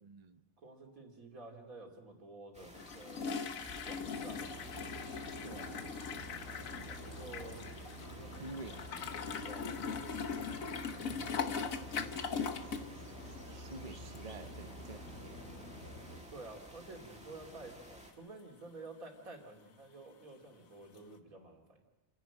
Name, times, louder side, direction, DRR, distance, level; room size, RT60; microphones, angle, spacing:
voice 1, 0.0-0.4 5.4-5.9 8.4-8.9 13.1-15.4, right 3 dB, 35° right, 8 dB, 0.8 m, -49 dB
voice 2, 0.6-3.4 3.8-4.7 6.9-7.6 8.1-8.6 9.4-10.2 10.9-12.6 16.3-21.8, right 2 dB, 85° right, 2 dB, 3.1 m, -51 dB
sound 1, 2.5-18.1, equal, 5° right, 2.1 m, -54 dB
sound 2, 2.7-12.9 13.2-13.5 14.2-14.3 14.6-14.7 21.0-21.1, left 6 dB, 75° left, 1.5 m, -40 dB
sound 3, 3.5-16.2, equal, 50° left, 4.6 m, -49 dB
28.5 x 10.5 x 8.9 m, 1.1 s
omnidirectional pair, 1.4 m